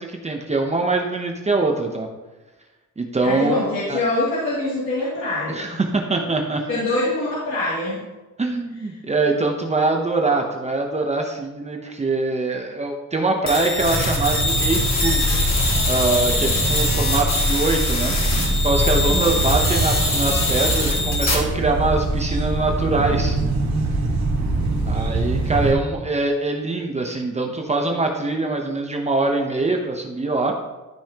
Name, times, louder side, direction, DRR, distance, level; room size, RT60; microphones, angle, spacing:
voice 1, 0.0-2.1 3.0-3.6 3.9-4.0 5.5-6.6 8.4-15.3 15.9-18.2 18.6-23.4 24.9-30.5, right 3 dB, 20° right, 2 dB, 0.8 m, -23 dB
voice 2, 3.2-5.8 6.7-8.0 19.0-19.4, left 2 dB, 45° left, -9 dB, 2.7 m, -24 dB
sound 1, 13.5-21.3, left 2 dB, 60° left, 2.6 m, -23 dB
sound 2, 13.8-25.7, right 2 dB, 65° right, 1.6 m, -23 dB
13.0 x 5.5 x 2.9 m, 1.1 s
cardioid pair, 125°, 30 cm